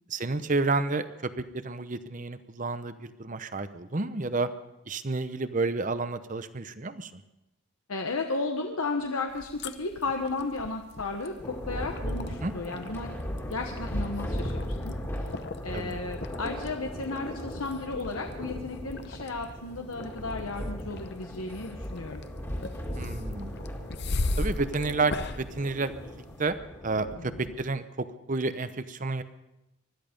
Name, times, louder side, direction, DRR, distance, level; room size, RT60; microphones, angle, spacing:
voice 1, 0.1-4.5 4.9-7.2 12.4-12.5 15.7-16.0 23.0-23.6 24.4-26.6 26.8-29.2, right 3 dB, 35° right, 12 dB, 0.8 m, -30 dB
voice 2, 7.9-13.1 13.5-15.3 15.6-22.2 27.1-27.5, left 3 dB, 90° left, 3 dB, 1.2 m, -34 dB
sound 1, 9.3-26.5, left 2 dB, 50° left, 0.8 m, -39 dB
Thunder, 11.4-27.6, equal, 10° left, 2.0 m, -37 dB
20.5 x 13.0 x 5.3 m, 0.93 s
head